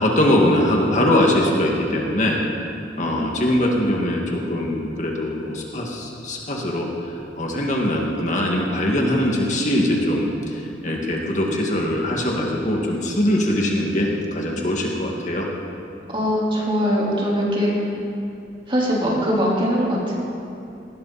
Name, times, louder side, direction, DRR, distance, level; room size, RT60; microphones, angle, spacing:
voice 1, 0.0-2.4 3.0-6.9 7.4-10.6 10.8-15.5, left 1 dB, 40° left, -1 dB, 2.0 m, -21 dB
voice 2, 16.1-17.7 18.7-20.1, equal, 30° right, -5 dB, 3.9 m, -21 dB
19.0 x 17.5 x 4.2 m, 2.6 s
head